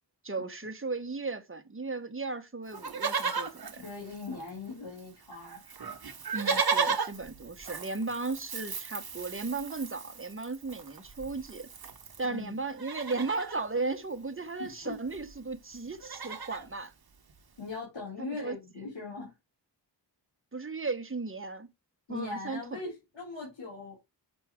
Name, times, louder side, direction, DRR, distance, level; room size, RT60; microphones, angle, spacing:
voice 1, 0.2-3.9 6.3-11.7 12.2-16.9 18.2-18.6 20.5-21.7 22.1-22.8, right 3 dB, 30° right, 1.0 m, -36 dB
Livestock farm animals working animals, 2.7-4.7 5.0-5.1 5.3-12.3 12.7-13.6 14.8-14.9 15.1-15.4 15.7-16.7 17.3-17.4, right 5 dB, 55° right, 1.0 m, -35 dB
voice 2, 3.8-5.6 12.2-12.6 14.6-15.0 17.6-19.3 22.1-24.0, left 3 dB, 90° left, 2.9 m, -40 dB
6.1 x 5.9 x 3.6 m
wide cardioid pair, 65°, 43 cm